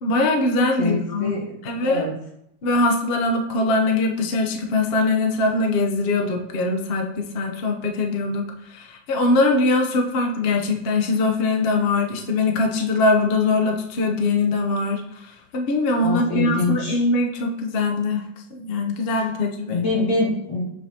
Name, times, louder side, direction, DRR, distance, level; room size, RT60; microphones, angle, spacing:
voice 1, 0.0-1.3 1.6-2.0 2.6-19.8, left 2 dB, 50° left, 2 dB, 0.7 m, -22 dB
voice 2, 0.8-1.4 1.7-2.1 16.0-17.0 19.7-20.7, left 2 dB, 85° left, -4 dB, 2.7 m, -24 dB
6.9 x 5.9 x 2.8 m, 0.78 s
omnidirectional pair, 2.0 m